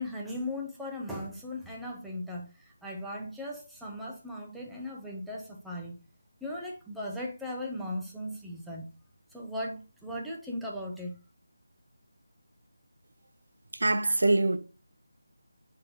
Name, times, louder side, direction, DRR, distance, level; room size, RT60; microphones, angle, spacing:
voice 1, 0.0-6.0 6.4-8.9 9.3-11.2, left 1 dB, ahead, 0.8 m, -38 dB
voice 2, 13.7-14.6, right 2 dB, 85° right, 0.9 m, -24 dB
10.5 x 3.8 x 2.9 m
figure-of-eight pair, 175°, 0 cm